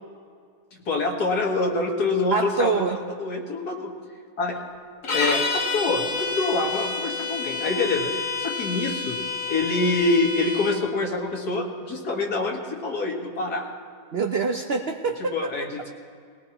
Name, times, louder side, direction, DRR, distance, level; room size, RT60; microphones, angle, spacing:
voice 1, 0.9-3.9 4.4-4.5 5.1-9.2 9.5-13.7 15.3-15.9, left 2 dB, 80° left, 0 dB, 2.2 m, -26 dB
voice 2, 2.3-3.0 14.1-15.5, right 4 dB, 55° right, 4 dB, 0.7 m, -25 dB
sound 1, 5.0-10.8, left 4 dB, 55° left, 1.6 m, -29 dB
20.0 x 18.5 x 3.0 m, 2.2 s
omnidirectional pair, 1.7 m